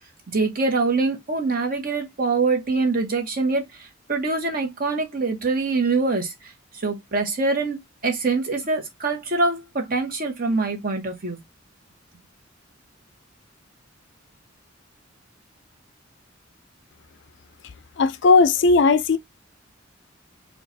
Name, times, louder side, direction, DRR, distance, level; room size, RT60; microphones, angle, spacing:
voice 1, 0.3-6.5 6.8-11.4, right 3 dB, 45° right, 1.0 m, -24 dB
voice 2, 18.0-19.2, left 4 dB, 60° left, 0.4 m, -16 dB
4.6 x 2.3 x 2.6 m
head